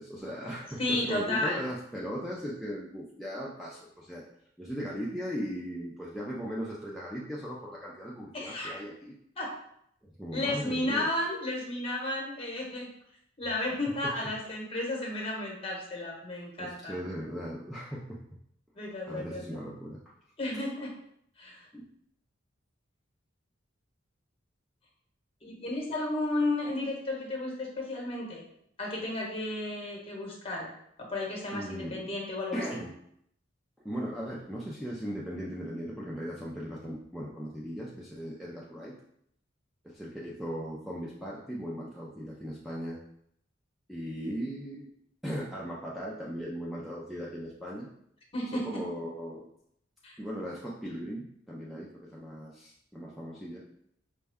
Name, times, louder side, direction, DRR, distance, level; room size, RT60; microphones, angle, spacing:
voice 1, 0.0-4.2 4.6-9.2 10.0-11.1 13.5-13.6 14.0-14.1 16.6-18.2 18.8-20.1 21.7-21.9 31.5-32.0 32.5-32.9 33.8-38.9 39.8-43.0 43.9-44.9 45.2-47.9 48.4-49.5 50.2-53.6, equal, ahead, -5 dB, 0.4 m, -38 dB
voice 2, 0.8-1.6 8.3-8.8 9.4-9.5 10.3-12.9 13.4-17.0 18.7-19.5 20.4-20.9 21.4-21.6 25.4-28.4 28.8-30.7 31.1-32.6 48.3-48.8 50.0-50.1, left 2 dB, 30° left, -1 dB, 1.0 m, -33 dB
5.1 x 2.2 x 3.4 m, 0.73 s
head